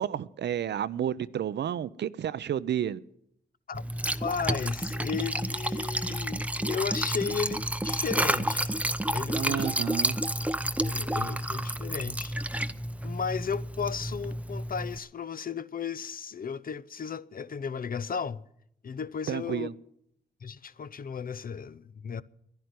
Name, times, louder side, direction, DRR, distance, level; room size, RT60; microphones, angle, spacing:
voice 1, 0.0-3.0 9.3-10.2 19.3-19.7, right 9 dB, 70° right, 0.6 m, -31 dB
Liquid, 3.7-15.0, right 1 dB, 5° right, 0.7 m, -30 dB
voice 2, 4.2-8.8 9.1-9.8 10.8-12.3 13.0-18.4 18.8-19.7 20.4-22.2, left 6 dB, 50° left, 0.6 m, -35 dB
11.0 x 10.5 x 9.5 m
supercardioid pair, 45°, 19 cm